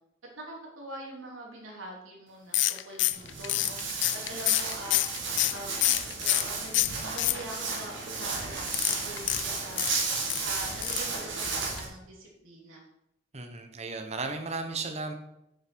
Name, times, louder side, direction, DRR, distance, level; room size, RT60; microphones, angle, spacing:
voice 1, 0.4-3.8 4.3-5.1 5.5-5.8 6.2-10.1 10.4-12.8, right 1 dB, 80° right, -2 dB, 3.1 m, -43 dB
sound 1, 2.5-6.5 6.7-7.8 8.7-10.4 10.8-11.1 11.4-11.5 11.8-11.9, left 16 dB, 60° left, 0.4 m, -27 dB
Walk footsteps, 3.1-11.8, right 4 dB, 60° right, 2.8 m, -34 dB
voice 2, 13.3-15.1, right 3 dB, 30° right, 6 dB, 1.0 m, -35 dB
9.5 x 7.0 x 4.6 m, 0.82 s
head